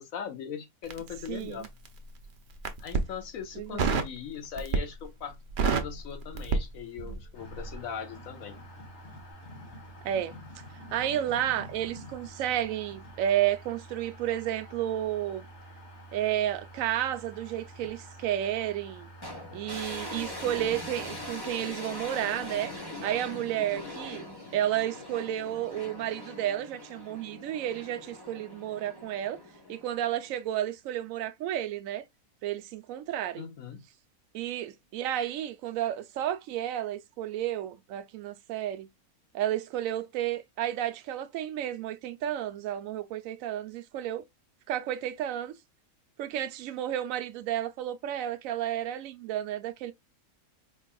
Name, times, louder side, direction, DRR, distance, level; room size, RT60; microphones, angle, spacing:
voice 1, 0.0-1.7 2.8-5.4 5.6-8.6 33.3-33.8, left 7 dB, 70° left, 1.1 m, -40 dB
Crackle, 0.8-2.0 2.5-3.1 3.8-4.2 4.6-5.0 5.3-7.3 7.5-7.7, right 5 dB, 50° right, 0.6 m, -28 dB
voice 2, 1.3-1.7 3.6-3.8 10.0-10.3 10.9-15.5 16.1-19.1 19.5-22.7 23.0-24.3 24.5-29.4 29.7-32.0 32.4-33.5 34.3-38.9 39.3-44.2 44.7-45.5 46.2-49.9, right 11 dB, 70° right, 0.9 m, -31 dB
sound 1, 7.3-21.3, right 1 dB, 50° left, 1.5 m, -48 dB
sound 2, 19.2-30.4, left 1 dB, 20° left, 1.0 m, -42 dB
4.6 x 3.3 x 2.2 m
omnidirectional pair, 1.5 m